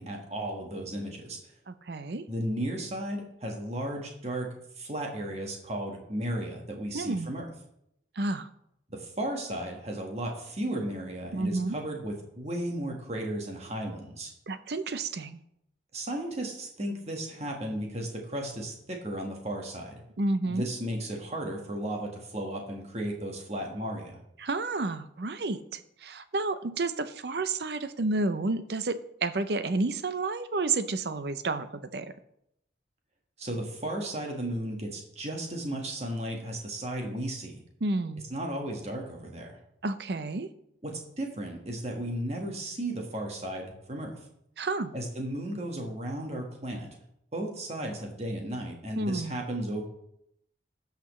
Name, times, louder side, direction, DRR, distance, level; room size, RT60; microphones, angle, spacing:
voice 1, 0.0-1.4 2.3-4.5 4.8-7.5 8.9-14.3 15.9-20.0 20.4-24.2 33.4-37.6 38.3-39.6 40.8-44.2 44.9-46.9 47.3-49.8, right 1 dB, 35° right, 1 dB, 1.6 m, -34 dB
voice 2, 1.7-2.2 6.9-7.3 8.2-8.5 11.3-11.8 14.5-15.4 20.2-20.7 24.4-32.1 37.8-38.2 39.8-40.5 44.6-44.9 49.0-49.4, right 3 dB, 65° right, 12 dB, 0.6 m, -30 dB
17.0 x 5.9 x 3.2 m, 0.77 s
head